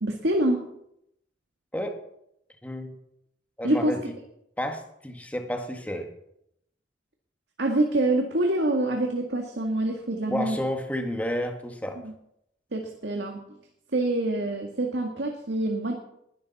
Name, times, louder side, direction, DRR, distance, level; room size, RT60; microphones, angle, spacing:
voice 1, 0.0-0.7 3.6-4.0 7.6-10.6 12.0-12.1 12.7-13.4 13.9-15.9, right 1 dB, 80° right, 2 dB, 1.9 m, -26 dB
voice 2, 2.6-3.0 3.6-4.0 4.6-6.1 10.3-12.0, equal, 10° left, 4 dB, 1.7 m, -31 dB
20.5 x 12.0 x 4.2 m, 0.79 s
head